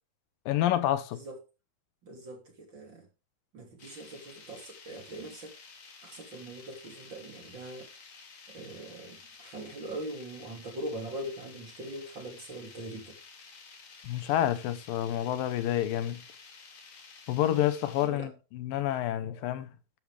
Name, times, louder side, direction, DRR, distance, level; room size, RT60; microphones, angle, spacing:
voice 1, 0.5-1.2 14.0-16.2 17.3-19.7, left 12 dB, 75° left, 2.6 m, -28 dB
voice 2, 2.0-3.1 3.5-5.6 6.0-7.9 8.5-13.2 18.0-18.3, right 1 dB, 35° right, 3.0 m, -42 dB
sound 1, 3.8-18.1, left 5 dB, 50° left, 3.4 m, -52 dB
12.5 x 10.5 x 3.3 m
omnidirectional pair, 4.1 m